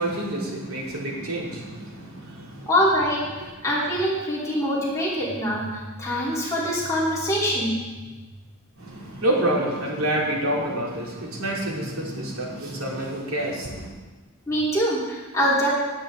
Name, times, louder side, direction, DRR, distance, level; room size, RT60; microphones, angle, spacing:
voice 1, 0.0-2.7 8.8-13.9, right 1 dB, 85° right, -3 dB, 3.1 m, -28 dB
voice 2, 2.7-7.8 14.5-15.7, equal, 15° left, -7 dB, 3.4 m, -24 dB
17.5 x 8.7 x 3.8 m, 1.3 s
head